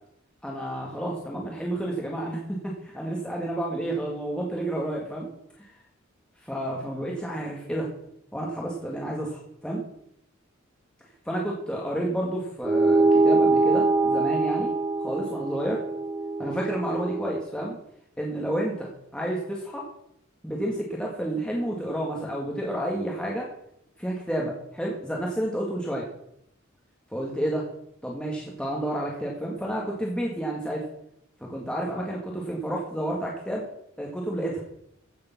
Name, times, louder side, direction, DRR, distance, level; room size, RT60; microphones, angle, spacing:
voice 1, 0.4-5.3 5.6-5.7 6.4-7.9 8.3-9.8 11.3-14.7 15.0-15.8 16.4-17.8 18.2-19.9 20.4-23.5 24.0-26.1 27.1-27.7 28.0-30.9 31.4-33.7 34.0-34.6, right 1 dB, 5° left, -2 dB, 1.8 m, -30 dB
sound 1, 12.6-17.4, right 3 dB, 20° right, 0.4 m, -23 dB
15.5 x 6.9 x 5.9 m, 0.75 s
head